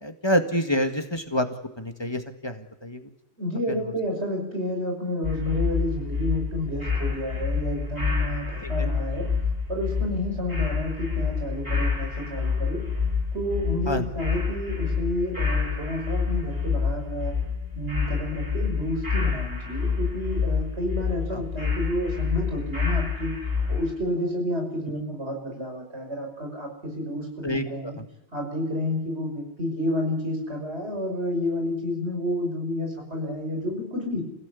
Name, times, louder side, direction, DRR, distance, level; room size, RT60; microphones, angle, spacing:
voice 1, 0.0-1.5 1.8-3.0 3.7-3.8 8.6-8.9 13.9-14.1 21.3-21.4 27.4-28.0, equal, 25° left, 6 dB, 2.0 m, -27 dB
voice 2, 3.4-9.3 9.7-12.8 13.3-17.4 17.8-23.3 23.7-28.0 28.3-34.2, left 1 dB, 75° right, 2 dB, 6.2 m, -30 dB
sound 1, 5.2-23.9, left 5 dB, 35° right, 7.4 m, -28 dB
28.5 x 16.5 x 8.5 m, 0.89 s
omnidirectional pair, 1.1 m